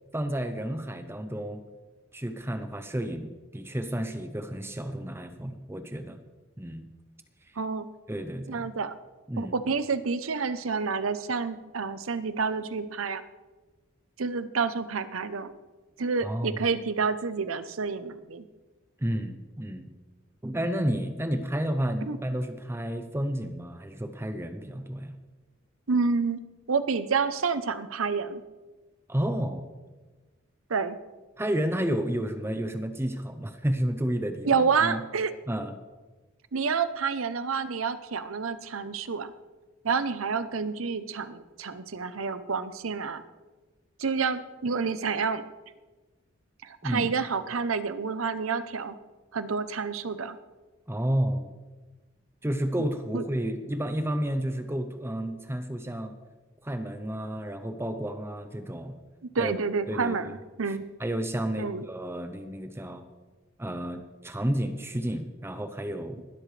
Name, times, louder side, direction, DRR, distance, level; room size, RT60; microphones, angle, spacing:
voice 1, 0.1-1.6 2.1-6.2 6.6-6.9 8.1-8.7 9.3-9.5 16.2-16.6 19.0-19.9 20.4-25.2 29.1-29.6 31.4-35.0 35.5-35.7 46.8-47.1 50.9-51.5 52.4-56.2 56.6-58.9 59.4-59.5 59.9-60.2 60.7-63.0 63.6-66.2, right 1 dB, 10° right, 8 dB, 0.7 m, -31 dB
voice 2, 7.6-7.9 8.5-8.9 9.4-13.2 14.2-15.5 16.0-18.5 22.1-22.2 25.9-26.4 26.7-28.4 30.7-31.0 34.4-35.3 36.5-39.3 39.8-43.2 44.0-45.4 46.6-49.0 49.3-50.4 53.1-53.2 59.3-60.8 61.6-61.9, right 5 dB, 80° right, 12 dB, 0.8 m, -29 dB
19.5 x 12.5 x 3.3 m, 1.2 s
head